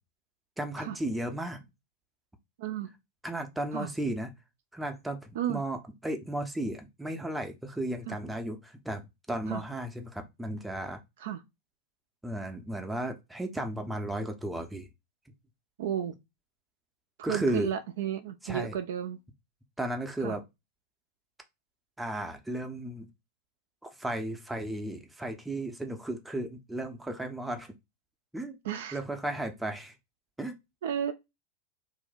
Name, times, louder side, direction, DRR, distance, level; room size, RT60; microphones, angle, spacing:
voice 1, 0.6-1.7 3.2-4.3 4.7-5.8 6.0-11.0 12.2-14.9 17.2-17.7 18.4-18.8 19.8-20.4 22.0-23.1 23.8-27.7 28.3-28.6 28.9-29.9 30.4-30.5, right 1 dB, 5° right, 0.5 m, -34 dB
voice 2, 2.6-2.9 3.7-3.9 5.4-5.6 8.1-8.2 9.5-9.6 11.2-11.4 15.8-16.1 17.2-19.2 20.2-20.4 28.6-29.0 30.8-31.1, right 10 dB, 55° right, 0.3 m, -33 dB
2.6 x 2.1 x 4.0 m
figure-of-eight pair, 90°, 0 cm